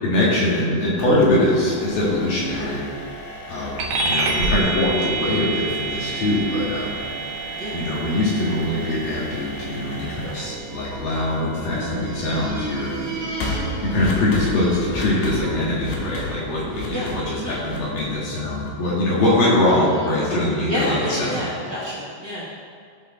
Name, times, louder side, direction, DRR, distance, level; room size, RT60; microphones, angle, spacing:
voice 1, 0.0-2.8 3.5-7.0 7.7-12.9 13.8-21.4, left 1 dB, 65° left, -6 dB, 3.4 m, -22 dB
sound 1, 1.0-18.9, left 1 dB, 90° left, 3.6 m, -35 dB
sound 2, 3.8-13.6, right 3 dB, 65° right, 2.3 m, -29 dB
sound 3, 10.2-18.1 19.2-21.7, right 2 dB, 45° right, 1.9 m, -35 dB
voice 2, 16.9-17.6 20.7-22.5, left 1 dB, 80° right, -9 dB, 0.9 m, -29 dB
15.5 x 5.4 x 4.3 m, 2.2 s
omnidirectional pair, 4.7 m